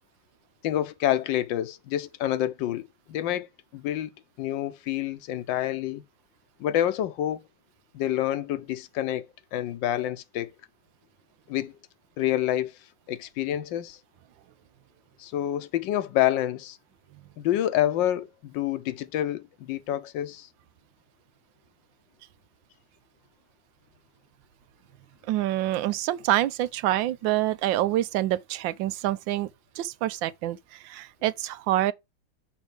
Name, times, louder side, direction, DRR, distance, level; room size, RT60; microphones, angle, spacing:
voice 1, 0.6-3.5 3.7-4.1 4.4-6.0 6.6-7.4 7.9-9.3 9.5-10.5 11.5-11.7 12.2-12.8 13.1-14.0 15.2-16.8 17.4-20.5, left 12 dB, 80° left, 1.4 m, -28 dB
voice 2, 25.3-29.5 29.8-31.9, right 14 dB, 90° right, 1.3 m, -26 dB
6.2 x 5.0 x 3.3 m
omnidirectional pair, 2.0 m